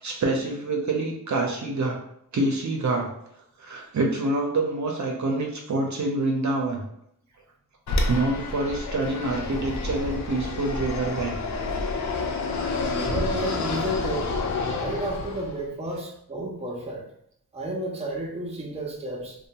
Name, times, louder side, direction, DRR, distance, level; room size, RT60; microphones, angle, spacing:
voice 1, 0.0-2.0 2.3-3.1 3.6-6.8 8.1-11.4 12.5-12.9, right 2 dB, 55° right, 0 dB, 0.6 m, -26 dB
Fixed-wing aircraft airplane, 7.9-15.7, left 3 dB, 55° left, 0.4 m, -29 dB
voice 2, 12.7-14.4 14.6-17.1 17.5-19.4, right 1 dB, 20° right, -2 dB, 0.6 m, -32 dB
2.6 x 2.2 x 2.9 m, 0.73 s
wide cardioid pair, 70°, 34 cm